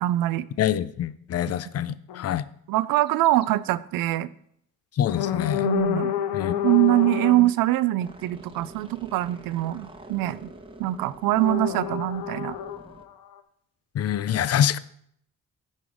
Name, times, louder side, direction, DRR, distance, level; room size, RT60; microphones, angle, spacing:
voice 1, 0.0-0.5 1.5-1.6 2.7-4.3 5.6-6.1 6.6-10.5 10.8-12.6, right 15 dB, 85° right, 0.5 m, -23 dB
voice 2, 0.6-2.4 5.0-5.7 6.3-6.6 13.9-14.8, left 10 dB, 45° left, 0.5 m, -25 dB
sound 1, 2.1-2.3 3.3-3.4 5.1-7.5 11.3-13.4, left 10 dB, 80° left, 0.7 m, -28 dB
sound 2, 8.0-13.1, right 2 dB, 15° right, 1.0 m, -47 dB
10.5 x 3.9 x 4.9 m
cardioid pair, 80°, 33 cm